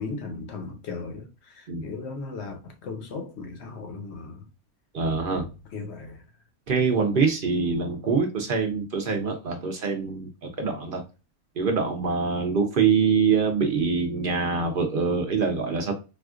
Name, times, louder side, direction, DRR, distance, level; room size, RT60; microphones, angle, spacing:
voice 1, 0.0-4.5 5.7-6.2, left 4 dB, 60° left, 0.8 m, -37 dB
voice 2, 4.9-5.5 6.7-11.0 11.6-15.9, right 5 dB, 60° right, 0.5 m, -24 dB
4.2 x 2.4 x 2.3 m
omnidirectional pair, 1.6 m